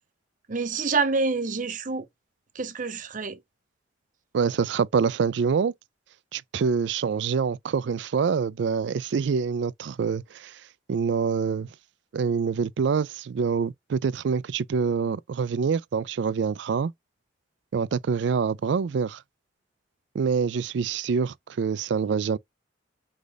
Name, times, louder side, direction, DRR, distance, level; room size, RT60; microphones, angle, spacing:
voice 1, 0.5-2.1 2.5-3.4, right 4 dB, 45° right, 0.7 m, -27 dB
voice 2, 4.3-5.7 6.3-10.6 10.9-11.7 12.1-16.9 17.7-19.2 20.1-22.4, right 6 dB, 65° right, 0.3 m, -26 dB
5.0 x 2.3 x 3.9 m
head